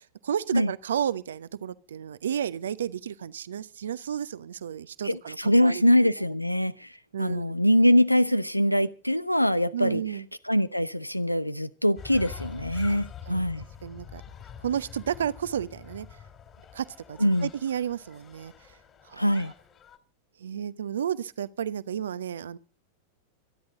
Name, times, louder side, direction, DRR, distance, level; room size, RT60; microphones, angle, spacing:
voice 1, 0.0-5.8 6.3-6.4 7.1-7.4 9.7-10.3 12.9-13.0 13.3-13.4 13.8-14.2 14.6-16.1 16.7-18.5 19.0-19.5 20.4-22.6, right 9 dB, 65° right, 0.9 m, -32 dB
voice 2, 5.0-6.9 7.2-10.0 10.5-13.6 17.2-17.5 19.2-19.5, equal, 90° left, 0.7 m, -23 dB
sound 1, 12.0-20.0, left 7 dB, 30° left, 2.7 m, -45 dB
25.5 x 10.5 x 3.8 m
figure-of-eight pair, 90°, 0 cm